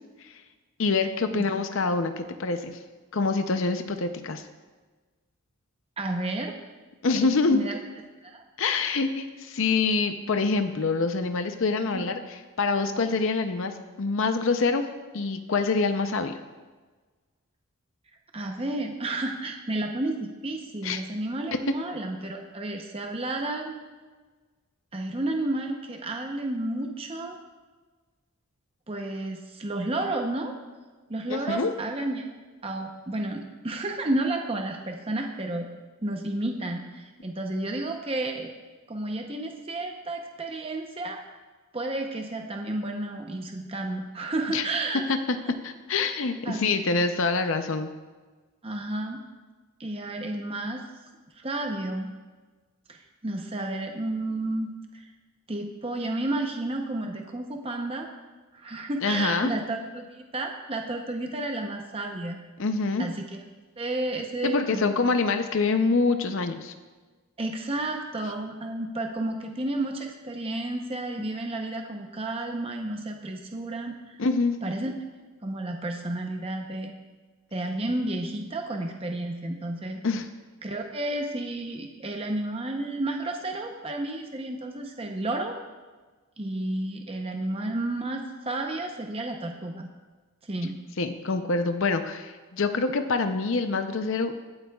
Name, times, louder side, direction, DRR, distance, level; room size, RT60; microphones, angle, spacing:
voice 1, 0.8-2.8 3.1-4.4 7.0-7.6 8.6-14.8 15.1-16.4 20.8-21.0 21.7-21.8 31.3-31.7 44.5-44.6 45.1-45.2 45.5-47.9 59.0-59.5 62.6-63.1 64.4-66.7 74.2-74.6 80.0-80.3 91.0-94.3, left 4 dB, 60° left, 8 dB, 0.6 m, -25 dB
voice 2, 6.0-6.6 7.2-7.8 8.2-8.4 11.9-12.1 18.3-23.7 24.9-27.4 28.9-30.5 31.1-32.3 32.6-35.7 36.0-38.5 38.9-41.2 41.7-45.0 46.4-46.8 48.6-49.2 49.8-50.8 51.4-52.1 52.9-55.1 55.5-58.1 58.5-62.4 63.0-63.4 63.8-65.0 67.4-74.2 74.6-74.9 75.4-76.9 77.5-80.0 80.6-85.6 86.4-89.9 90.4-90.8, right 2 dB, 25° right, 3 dB, 0.7 m, -31 dB
23.5 x 8.0 x 2.3 m, 1.3 s
head